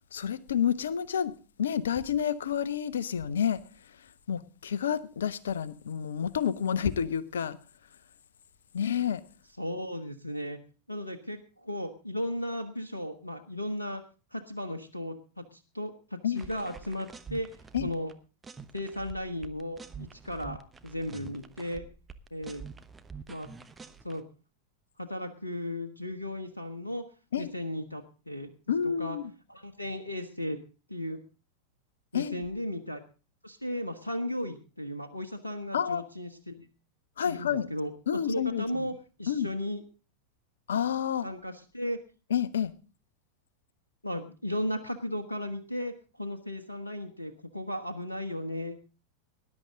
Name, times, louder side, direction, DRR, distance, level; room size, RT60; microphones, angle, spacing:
voice 1, 0.1-1.3 1.6-3.6 4.3-7.6 8.7-9.2 16.2-16.4 17.7-17.9 27.3-27.5 28.7-29.3 32.1-32.4 35.7-36.0 37.2-37.7 38.1-38.9 39.3-39.5 40.7-41.3 42.3-42.7, left 8 dB, 65° left, 17 dB, 0.9 m, -29 dB
voice 2, 9.6-10.6 10.9-14.0 14.3-17.5 17.8-18.1 18.7-21.8 22.3-22.6 23.3-23.5 24.0-24.2 25.0-27.0 27.4-28.5 28.8-29.2 29.5-30.6 30.9-31.2 32.1-33.0 33.4-36.7 37.2-37.9 38.3-38.9 39.2-39.8 41.2-42.0 44.0-48.8, left 1 dB, 85° left, 6 dB, 1.2 m, -35 dB
sound 1, 16.4-18.1 18.4-24.2, right 5 dB, 15° right, 1.0 m, -46 dB
19.0 x 11.0 x 3.8 m, 0.34 s
figure-of-eight pair, 90°, 0 cm